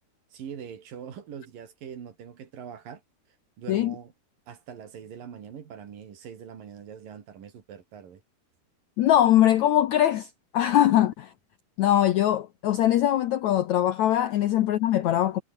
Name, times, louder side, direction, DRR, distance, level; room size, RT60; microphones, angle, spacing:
voice 1, 0.3-3.0 3.6-4.1 4.5-8.2, right 8 dB, 65° right, 4.3 m, -42 dB
voice 2, 9.0-11.3 11.8-15.4, left 12 dB, 75° left, 1.7 m, -22 dB
omnidirectional pair, 4.4 m